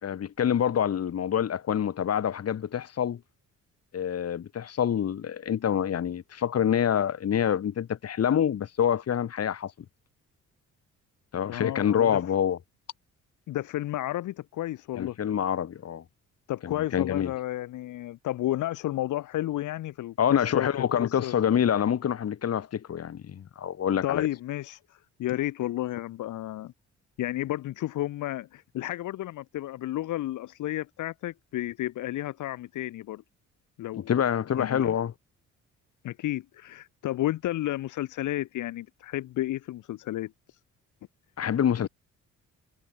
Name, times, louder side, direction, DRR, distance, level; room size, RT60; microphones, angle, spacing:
voice 1, 0.0-3.2 3.9-9.7 11.3-12.6 15.0-16.0 16.6-17.3 20.2-24.3 34.1-35.1 41.4-41.9, left 9 dB, 55° left, 2.7 m, -26 dB
voice 2, 11.5-12.2 13.5-15.2 16.5-20.7 21.0-21.4 24.0-26.7 27.2-33.2 33.8-34.2 34.5-34.9 36.0-40.3 41.8-41.9, left 14 dB, 80° left, 1.7 m, -32 dB
cardioid pair, 90°, 30 cm